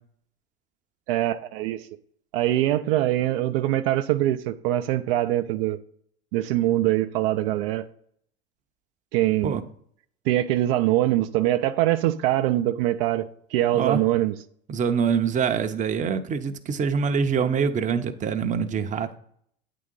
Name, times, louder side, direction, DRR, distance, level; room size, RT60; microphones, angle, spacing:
voice 1, 1.1-1.9 2.3-5.8 6.3-7.9 9.1-9.6 10.3-14.3, right 14 dB, 65° right, 0.5 m, -23 dB
voice 2, 14.7-19.2, right 6 dB, 25° right, 0.6 m, -25 dB
8.6 x 3.8 x 5.3 m
hypercardioid pair, 90°, 31 cm